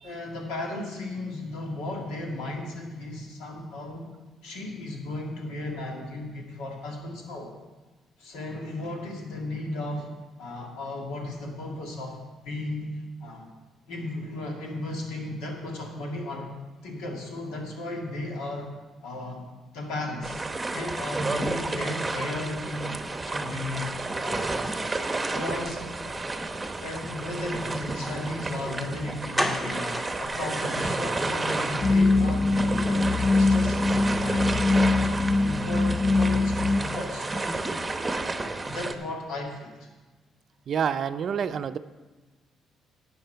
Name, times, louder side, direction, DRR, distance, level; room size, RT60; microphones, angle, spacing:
voice 1, 0.0-4.1 4.4-7.5 8.2-10.1 10.4-13.5 13.9-16.5 16.8-18.7 19.0-19.5 19.7-20.5 20.7-22.9 23.3-24.5 25.3-26.3 26.8-33.8 34.2-37.6 38.6-39.9, left 2 dB, 90° left, 0 dB, 2.1 m, -35 dB
sound 1, 20.2-38.9, right 2 dB, 20° right, 0.9 m, -31 dB
sound 2, 28.7-28.8 29.3-31.1 31.5-31.6 32.0-32.1 32.4-32.5, equal, 15° left, 1.5 m, -31 dB
sound 3, 31.8-36.8, left 3 dB, 35° left, 0.5 m, -22 dB
voice 2, 40.7-41.8, right 7 dB, 55° right, 12 dB, 0.5 m, -28 dB
12.0 x 8.4 x 4.6 m, 1.2 s
cardioid pair, 80°, 0 cm